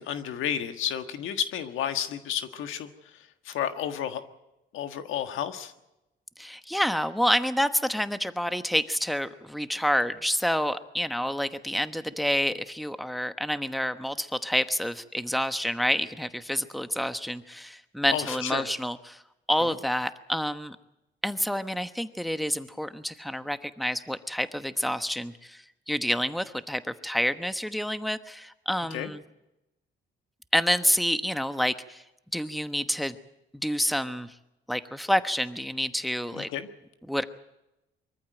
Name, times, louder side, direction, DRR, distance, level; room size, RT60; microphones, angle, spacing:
voice 1, 0.0-4.2 4.7-5.7 18.1-18.7 19.6-19.7 28.9-29.1 36.3-36.7, left 9 dB, 85° left, 8 dB, 1.6 m, -32 dB
voice 2, 6.4-19.2 19.5-20.8 21.2-29.2 30.5-32.0 32.3-33.2 33.5-34.3 34.7-36.5 37.1-37.2, equal, ahead, 10 dB, 1.1 m, -28 dB
24.0 x 14.5 x 9.0 m, 0.92 s
cardioid pair, 90°, 20 cm